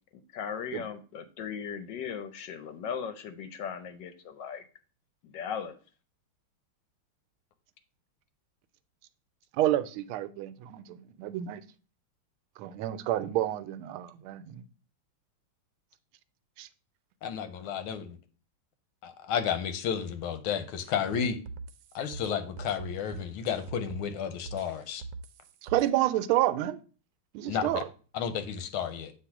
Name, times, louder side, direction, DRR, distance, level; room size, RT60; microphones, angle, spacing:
voice 1, 0.3-4.6 5.2-5.8, left 7 dB, 65° left, 1.3 m, -37 dB
voice 2, 9.5-11.6 12.6-14.6 16.6-16.7 25.6-26.8 27.3-27.9, right 14 dB, 90° right, 1.4 m, -29 dB
voice 3, 17.2-18.2 19.0-21.4 21.9-25.0 27.5-27.8 28.1-29.1, left 8 dB, 90° left, 1.6 m, -32 dB
sound 1, 20.8-24.1 24.5-25.9, right 3 dB, 70° right, 1.1 m, -42 dB
7.9 x 3.0 x 5.8 m
omnidirectional pair, 2.3 m